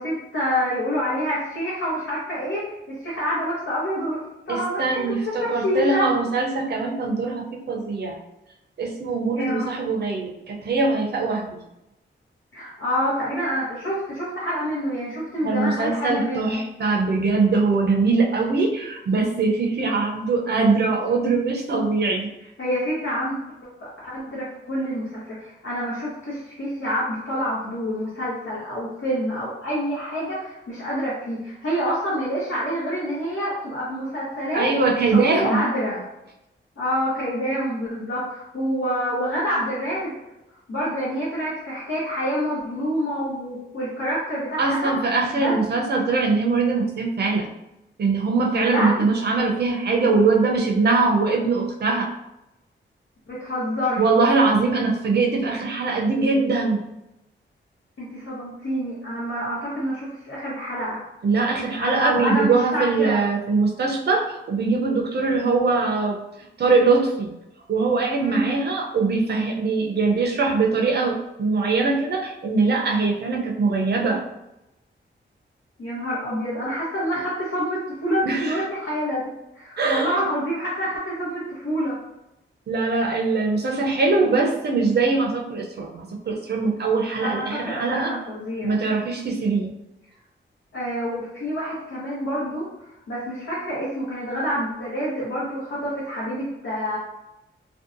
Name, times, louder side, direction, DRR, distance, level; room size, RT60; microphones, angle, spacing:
voice 1, 0.0-5.1 5.4-6.1 9.3-9.7 12.5-16.6 22.6-23.4 23.8-34.7 35.3-36.0 36.8-40.1 40.7-44.9 45.4-45.7 48.5-49.1 53.3-54.1 58.0-61.0 61.8-63.2 68.2-68.5 75.8-79.3 79.5-82.0 87.2-88.7 90.7-92.7 93.1-97.0, equal, 85° left, -8 dB, 0.9 m, -27 dB
voice 2, 4.5-8.2 8.8-11.6 15.4-22.3 34.5-35.6 44.6-47.5 48.0-52.1 54.0-56.9 61.2-66.2 66.6-67.4 67.7-74.2 78.2-78.6 79.8-80.2 82.7-88.1 88.6-89.8, right 3 dB, 55° right, 1 dB, 0.5 m, -22 dB
2.6 x 2.2 x 2.5 m, 0.90 s
wide cardioid pair, 100°, 20 cm